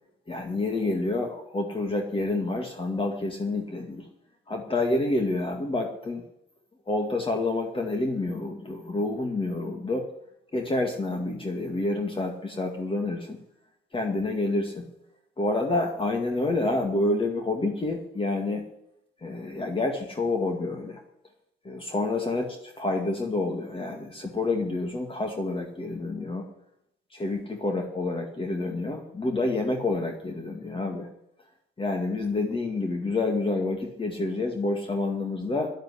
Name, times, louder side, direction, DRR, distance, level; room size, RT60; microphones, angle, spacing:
voice 1, 0.3-4.1 4.5-6.2 6.9-10.1 10.5-13.4 13.9-14.9 15.4-18.6 19.2-21.0 21.6-26.5 27.1-31.1 31.8-35.7, left 2 dB, 25° left, 3 dB, 2.2 m, -28 dB
10.5 x 8.6 x 9.9 m, 0.76 s
cardioid pair, 90°, 20 cm